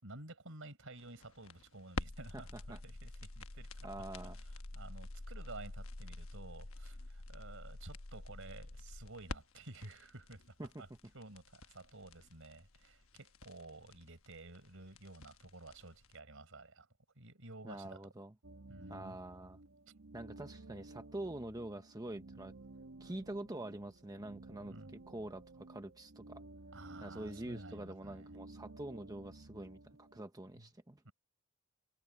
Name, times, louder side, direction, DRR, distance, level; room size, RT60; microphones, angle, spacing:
voice 1, 0.0-3.9 4.5-10.9 11.1-16.9 17.2-18.0 18.7-19.2 24.7-25.0 26.7-28.4 30.5-30.7 31.0-31.1, right 2 dB, 70° right, 5.5 m, -52 dB
sound 1, 1.0-16.1, left 2 dB, 75° left, 1.2 m, -48 dB
voice 2, 3.8-4.4 10.6-10.8 17.6-18.3 18.9-19.6 20.1-22.5 23.0-24.7 25.1-26.4 27.0-31.0, right 1 dB, 20° right, 1.0 m, -45 dB
sound 2, 18.4-30.2, right 2 dB, 85° right, 1.4 m, -54 dB
head